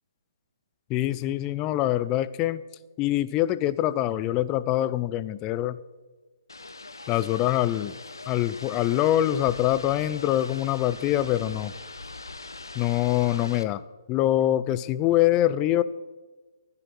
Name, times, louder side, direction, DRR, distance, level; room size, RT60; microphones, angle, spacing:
voice 1, 0.9-2.6 3.0-5.8 7.1-8.0 8.3-11.7 12.7-13.8 14.1-15.8, left 13 dB, 25° left, 16 dB, 0.6 m, -24 dB
sound 1, 6.5-13.6, left 3 dB, 80° left, 1.1 m, -41 dB
15.5 x 9.9 x 6.3 m, 1.3 s
figure-of-eight pair, 135°, 2 cm